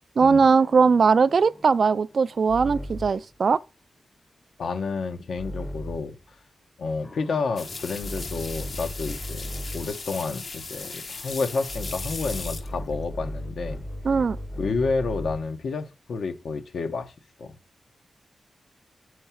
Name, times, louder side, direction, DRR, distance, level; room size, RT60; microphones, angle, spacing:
voice 1, 0.2-3.6 14.0-14.4, right 5 dB, 55° right, 0.3 m, -20 dB
sound 1, 0.6-3.3 5.4-6.2 7.0-10.0 11.7-15.6, equal, 15° left, 0.7 m, -37 dB
voice 2, 4.6-6.2 6.8-9.5 9.7-13.9 14.6-17.1 17.4-17.5, left 4 dB, 75° left, 1.0 m, -30 dB
sound 2, 7.6-13.1, left 4 dB, 45° left, 0.7 m, -37 dB
6.4 x 4.7 x 5.8 m
wide cardioid pair, 115°, 0 cm